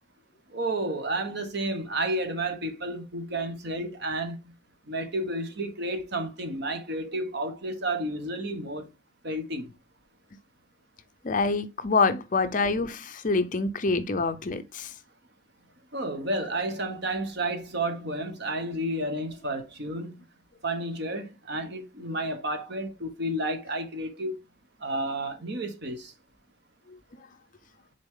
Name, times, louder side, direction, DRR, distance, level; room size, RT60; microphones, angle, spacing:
voice 1, 0.5-4.5 4.9-8.9 9.2-9.7 15.9-20.2 20.6-24.4 24.8-26.1, right 1 dB, 55° right, 1.2 m, -31 dB
voice 2, 11.2-14.9, left 3 dB, 40° left, 0.6 m, -26 dB
6.6 x 4.1 x 3.7 m
head